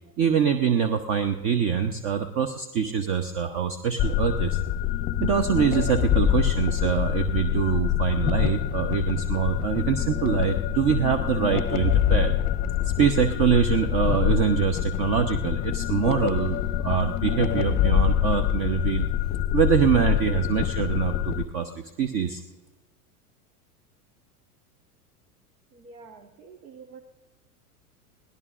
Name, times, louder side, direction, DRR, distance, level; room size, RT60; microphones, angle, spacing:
voice 1, 0.2-4.6 5.2-12.3 12.8-19.1 19.5-21.7 22.0-22.4, right 7 dB, 40° right, 9 dB, 0.9 m, -24 dB
sound 1, 4.0-21.4, left 11 dB, 20° left, 0.7 m, -25 dB
voice 2, 25.7-27.0, right 5 dB, 75° right, 6 dB, 1.4 m, -47 dB
24.0 x 17.5 x 2.5 m, 1.2 s
hypercardioid pair, 95°, 46 cm